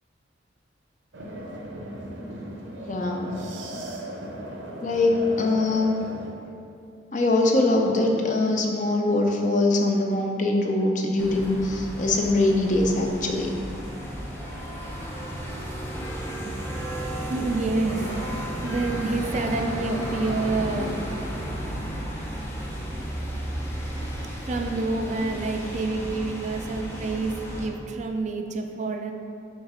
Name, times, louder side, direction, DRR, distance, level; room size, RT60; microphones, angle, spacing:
sound 1, 1.1-6.3, right 1 dB, 80° right, 0.7 m, -37 dB
voice 1, 2.9-3.4 4.8-6.0 7.1-13.5, left 2 dB, 40° left, 1 dB, 0.6 m, -23 dB
sound 2, 11.2-27.7, equal, 10° left, 0.8 m, -33 dB
voice 2, 17.1-21.0 24.4-27.3 27.6-29.1, right 3 dB, 40° right, 4 dB, 0.4 m, -28 dB
6.3 x 3.2 x 5.0 m, 2.5 s
head